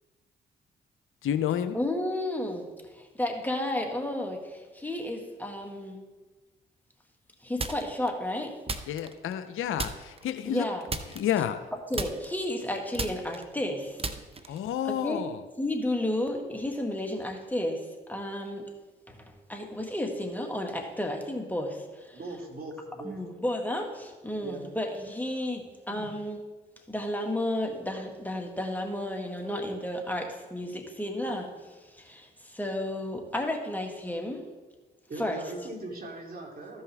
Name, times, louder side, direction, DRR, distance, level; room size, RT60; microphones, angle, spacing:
voice 1, 1.2-1.8 8.9-10.6 11.2-11.6 14.5-15.4, left 10 dB, 70° left, 10 dB, 0.6 m, -30 dB
voice 2, 1.7-6.0 7.4-8.6 10.5-10.9 11.9-14.0 14.5-14.6 14.8-15.3 15.6-18.7 19.1-22.2 23.0-26.4 26.9-34.4 35.2-35.4, left 1 dB, 10° left, 2 dB, 1.9 m, -32 dB
sound 1, 7.6-8.1 8.7-9.5 9.8-10.3 10.9-11.7 11.9-14.7, right 3 dB, 25° right, 0.9 m, -35 dB
voice 3, 22.1-23.2 24.4-24.7 25.9-26.1 35.1-36.8, right 2 dB, 45° right, -1 dB, 2.9 m, -40 dB
14.5 x 5.5 x 3.5 m, 1.3 s
hypercardioid pair, 50°, 21 cm